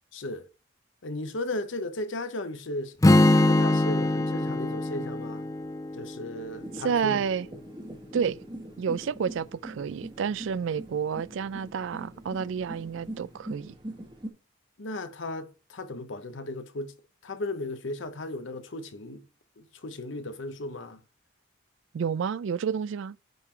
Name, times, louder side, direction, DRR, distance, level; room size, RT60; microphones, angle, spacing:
voice 1, 0.1-0.5 1.0-5.5 5.9-7.2 14.8-16.9 17.2-19.2 19.6-21.0, left 2 dB, 70° left, 0.8 m, -36 dB
Strum, 3.0-7.2, left 2 dB, 15° left, 0.3 m, -23 dB
sound 1, 6.5-14.3, right 1 dB, 25° right, 1.4 m, -42 dB
voice 2, 6.8-7.5 8.1-8.4 8.8-13.7 21.9-23.2, right 7 dB, 70° right, 0.3 m, -30 dB
9.4 x 3.7 x 4.4 m
head